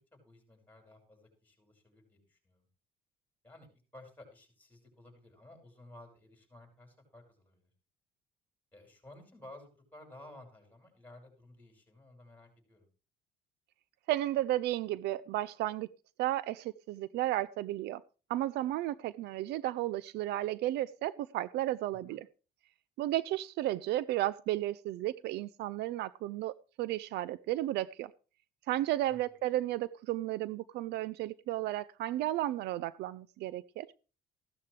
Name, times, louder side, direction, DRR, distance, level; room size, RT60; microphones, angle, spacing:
voice 1, 0.1-2.7 3.4-3.7 3.9-7.7 8.7-12.9 22.1-22.2 29.1-29.3, left 1 dB, 10° left, 6.1 m, -55 dB
voice 2, 14.1-15.9 16.2-18.0 18.3-22.2 23.0-28.1 28.7-33.9, right 14 dB, 80° right, 0.5 m, -33 dB
15.5 x 12.5 x 3.3 m
cardioid pair, 110°, 17 cm